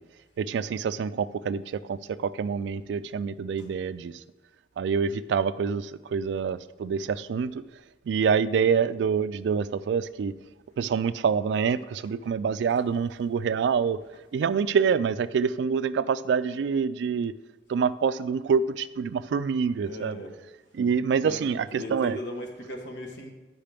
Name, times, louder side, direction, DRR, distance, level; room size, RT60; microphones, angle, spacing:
voice 1, 0.4-4.1 4.8-7.6 8.1-10.4 10.8-14.0 14.3-17.3 17.7-20.2 20.7-22.2, right 6 dB, 80° right, 14 dB, 0.3 m, -26 dB
voice 2, 19.8-20.3 21.2-23.3, left 1 dB, 80° left, 2 dB, 1.1 m, -38 dB
8.8 x 5.6 x 3.4 m, 1.2 s
head